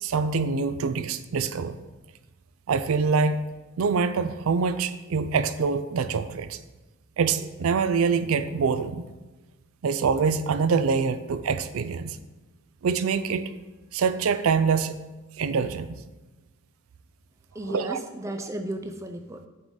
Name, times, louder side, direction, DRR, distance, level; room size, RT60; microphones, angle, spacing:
voice 1, 0.0-1.8 2.7-3.4 3.8-6.6 7.2-9.0 9.8-12.2 12.8-13.4 13.9-15.0 15.4-16.0 17.7-18.0, right 5 dB, 75° right, 12 dB, 0.4 m, -25 dB
voice 2, 17.5-19.5, right 1 dB, 15° right, 6 dB, 0.4 m, -34 dB
7.9 x 3.7 x 4.8 m, 1.1 s
head